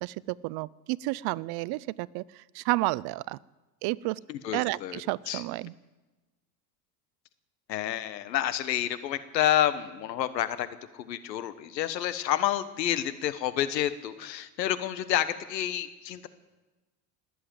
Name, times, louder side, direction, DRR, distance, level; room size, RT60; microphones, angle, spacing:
voice 1, 0.0-3.4 3.8-4.2 4.5-5.7, right 21 dB, 50° right, 23 dB, 0.5 m, -31 dB
voice 2, 4.3-5.0 5.3-5.4 7.7-10.7 10.9-16.3, left 12 dB, 90° left, 13 dB, 1.3 m, -29 dB
19.5 x 8.0 x 9.2 m, 1.2 s
hypercardioid pair, 90°, 49 cm